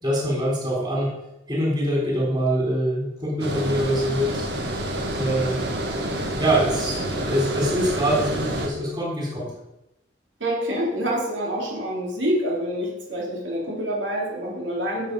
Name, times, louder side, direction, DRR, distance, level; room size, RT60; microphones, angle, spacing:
voice 1, 0.0-1.1 1.5-4.5 5.1-5.6 6.4-9.5, right 1 dB, 25° right, -3 dB, 3.8 m, -24 dB
Water, 3.4-8.7, right 1 dB, 60° right, 1.9 m, -28 dB
voice 2, 10.4-15.1, equal, 85° right, -3 dB, 3.4 m, -27 dB
12.0 x 7.5 x 5.4 m, 0.89 s
head